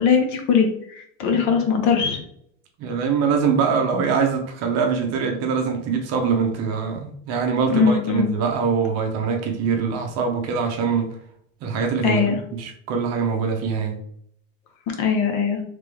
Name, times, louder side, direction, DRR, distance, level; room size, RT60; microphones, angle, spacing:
voice 1, 0.0-2.2 7.7-8.3 12.0-12.4 15.0-15.6, left 6 dB, 45° left, 4 dB, 0.8 m, -20 dB
voice 2, 2.8-11.2 11.6-14.0, right 5 dB, 40° right, 3 dB, 0.7 m, -23 dB
3.6 x 3.3 x 3.3 m, 0.67 s
supercardioid pair, 160°, 42 cm